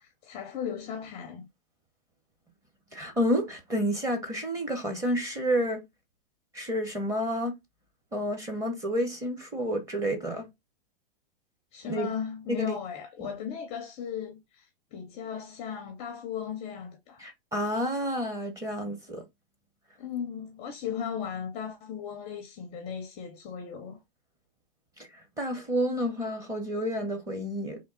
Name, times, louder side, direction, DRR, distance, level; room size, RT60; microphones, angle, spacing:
voice 1, 0.0-1.5 11.7-17.2 20.0-24.0, left 8 dB, 20° left, 0.5 m, -36 dB
voice 2, 2.9-5.8 6.5-7.5 8.1-10.5 11.8-12.1 12.5-12.7 13.2-13.3 17.2-19.2 25.4-27.8, equal, 10° right, 0.7 m, -30 dB
3.5 x 2.7 x 3.7 m
hypercardioid pair, 145°, 30 cm